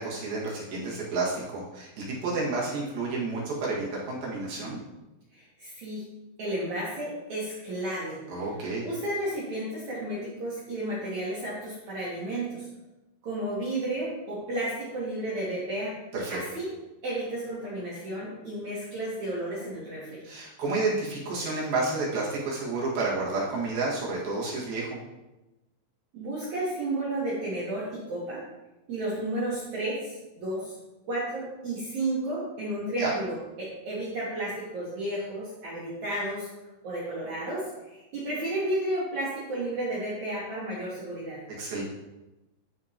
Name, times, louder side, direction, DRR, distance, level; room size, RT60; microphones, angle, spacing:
voice 1, 0.0-1.9 2.2-4.8 8.3-8.9 16.1-16.4 20.2-24.9 33.0-33.1 41.6-41.8, right 3 dB, 60° right, -5 dB, 3.1 m, -30 dB
voice 2, 5.3-6.0 6.4-8.2 8.8-12.7 13.2-15.9 16.3-16.7 17.0-20.2 26.1-28.4 28.9-30.7 31.1-36.5 36.8-41.4, right 1 dB, 80° right, -7 dB, 1.6 m, -32 dB
13.0 x 4.3 x 2.8 m, 1.0 s
omnidirectional pair, 5.2 m